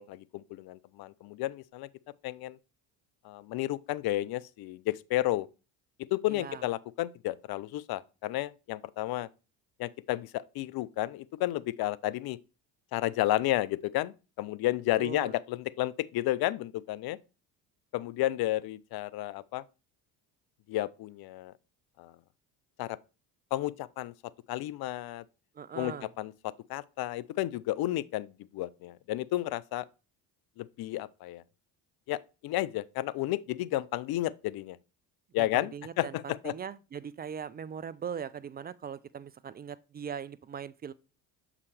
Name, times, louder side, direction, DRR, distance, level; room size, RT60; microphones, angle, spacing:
voice 1, 0.0-1.9 2.2-2.6 3.2-5.5 6.1-9.3 9.8-12.4 12.9-17.2 17.9-19.6 20.7-21.5 22.0-22.1 22.8-23.0 23.5-24.1 24.5-25.2 25.8-26.3 26.7-29.9 30.6-31.4 32.1-34.8 35.3-36.5, left 15 dB, 55° left, 0.5 m, -32 dB
voice 2, 6.3-6.6 15.0-15.3 25.5-26.1 35.4-40.9, right 7 dB, 25° right, 0.3 m, -40 dB
6.8 x 4.9 x 3.3 m
hypercardioid pair, 65°, 47 cm